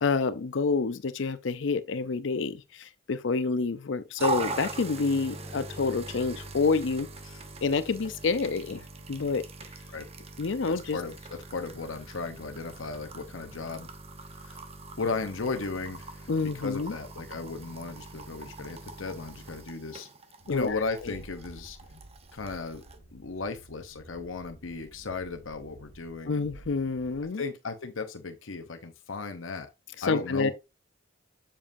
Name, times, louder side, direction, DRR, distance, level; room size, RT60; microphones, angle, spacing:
voice 1, 0.0-7.1 7.6-9.4 10.4-11.0 16.3-17.0 20.5-20.8 26.3-27.4 30.1-30.5, left 4 dB, 65° left, 0.5 m, -28 dB
sound 1, 4.2-23.0, right 3 dB, 30° right, 0.9 m, -41 dB
voice 2, 10.7-13.9 14.4-14.6 15.0-20.1 20.5-21.8 22.3-22.8 23.1-26.5 27.4-29.7 30.0-30.5, left 4 dB, 85° left, 0.9 m, -35 dB
Train, 20.4-27.2, right 1 dB, 75° right, 2.3 m, -51 dB
7.4 x 7.1 x 2.6 m
head